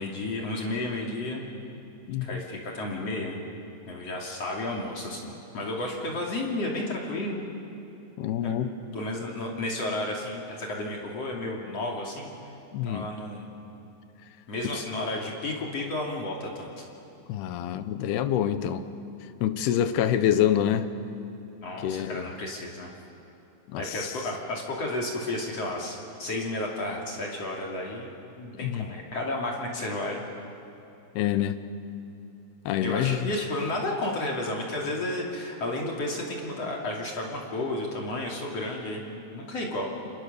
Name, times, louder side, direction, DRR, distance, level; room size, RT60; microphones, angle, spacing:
voice 1, 0.0-1.4 2.2-3.4 3.9-7.5 8.4-8.5 8.9-12.3 12.8-13.5 14.5-16.8 21.6-22.9 23.8-28.1 28.4-30.3 32.8-40.1, left 2 dB, 45° left, -1 dB, 3.5 m, -32 dB
voice 2, 8.2-8.7 12.7-13.0 17.3-18.8 19.4-20.9 21.8-22.3 23.7-24.1 28.6-28.9 31.2-31.6 32.7-33.3, left 10 dB, 85° left, 11 dB, 3.0 m, -26 dB
29.0 x 27.0 x 6.8 m, 2.8 s
omnidirectional pair, 4.5 m